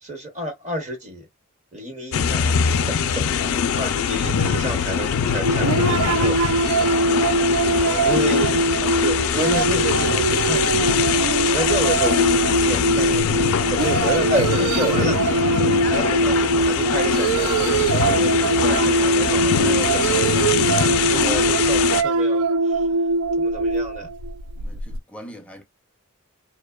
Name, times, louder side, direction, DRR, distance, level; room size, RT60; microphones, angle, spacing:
voice 1, 0.0-1.3 1.7-2.5 2.8-7.0 8.0-8.5 9.0-10.9 11.3-15.4 15.9-22.8 23.4-24.1, right 1 dB, 35° right, 0.9 m, -30 dB
sound 1, 2.1-22.0, left 7 dB, 80° left, 0.4 m, -22 dB
sound 2, 5.4-25.0, right 3 dB, 85° right, 0.4 m, -22 dB
voice 2, 7.6-8.5 24.6-25.6, left 1 dB, 5° left, 0.5 m, -40 dB
2.7 x 2.1 x 2.2 m
head